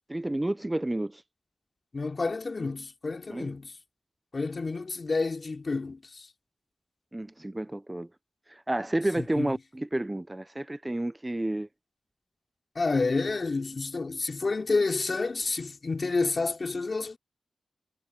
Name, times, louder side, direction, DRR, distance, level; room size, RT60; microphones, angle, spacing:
voice 1, 0.1-1.2 3.3-3.5 7.1-8.1 8.5-11.7, right 1 dB, 15° right, 0.6 m, -30 dB
voice 2, 1.9-3.7 4.3-6.3 9.2-9.5 12.7-17.2, left 3 dB, 45° left, 3.2 m, -29 dB
wide cardioid pair, 95°, 0 cm